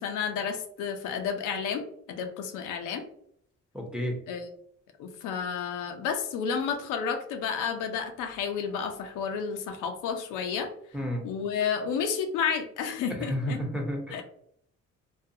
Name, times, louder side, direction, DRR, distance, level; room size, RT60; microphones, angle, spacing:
voice 1, 0.0-1.8 2.1-3.0 4.3-4.5 5.0-10.7 11.2-13.6 14.1-14.2, left 6 dB, 90° left, 5 dB, 0.5 m, -31 dB
voice 2, 3.7-4.2 10.9-11.3 13.2-14.2, equal, 5° right, 1 dB, 0.6 m, -31 dB
2.4 x 2.2 x 2.6 m, 0.68 s
cardioid pair, 90°, 30 cm